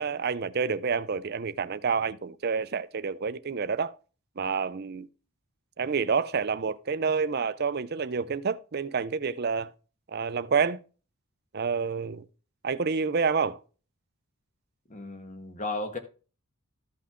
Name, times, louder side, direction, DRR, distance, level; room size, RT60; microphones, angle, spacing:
voice 1, 0.0-4.0 4.4-5.1 5.8-9.7 10.1-10.8 11.5-12.2 12.6-13.6, right 5 dB, 45° right, 0.5 m, -28 dB
voice 2, 14.9-16.0, left 2 dB, 35° left, 1.4 m, -34 dB
13.5 x 5.7 x 3.7 m
head